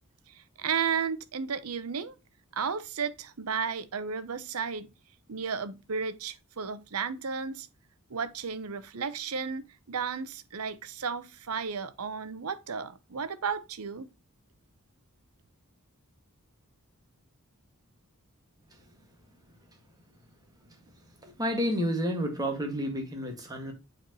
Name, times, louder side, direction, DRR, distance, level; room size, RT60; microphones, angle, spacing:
voice 1, 0.3-2.1 2.5-4.9 5.3-7.7 8.1-14.1, right 6 dB, 85° right, 0.8 m, -33 dB
voice 2, 21.2-23.7, equal, 15° right, 1.8 m, -30 dB
7.7 x 4.4 x 3.0 m
head